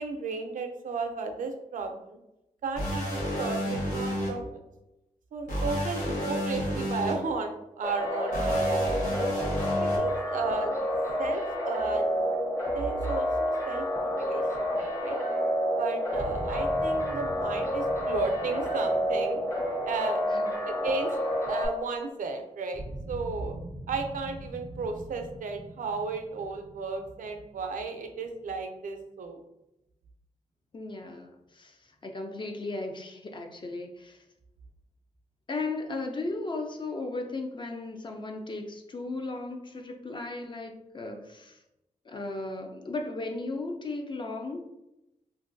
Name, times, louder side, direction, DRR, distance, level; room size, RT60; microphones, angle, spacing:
voice 1, 0.0-2.2 2.6-4.6 5.3-9.3 9.8-10.7 11.2-12.2 12.7-15.2 15.7-19.4 19.8-20.2 20.6-21.1 21.5-23.6 23.9-29.4, right 4 dB, 90° right, 5 dB, 0.4 m, -34 dB
sound 1, 2.8-4.3 5.5-7.1 8.3-10.0, equal, 85° left, 1.0 m, -31 dB
sound 2, 7.8-21.7, equal, 20° left, 0.8 m, -29 dB
sound 3, 16.1-21.1 22.7-28.4, right 1 dB, 20° right, 0.4 m, -43 dB
voice 2, 30.7-34.2 35.5-41.6 42.1-44.6, left 2 dB, 35° left, 4 dB, 0.4 m, -36 dB
3.0 x 2.5 x 2.5 m, 0.89 s
wide cardioid pair, 100°, 13 cm